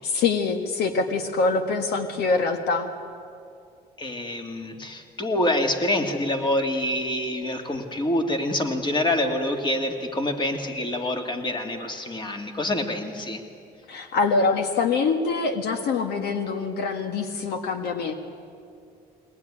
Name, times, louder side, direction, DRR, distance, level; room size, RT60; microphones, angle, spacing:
voice 1, 0.0-2.9 13.9-18.1, left 4 dB, 75° left, 7 dB, 1.7 m, -24 dB
voice 2, 4.0-13.4, left 1 dB, 30° left, 5 dB, 2.5 m, -26 dB
22.0 x 18.5 x 9.9 m, 2.5 s
cardioid pair, 110°, 17 cm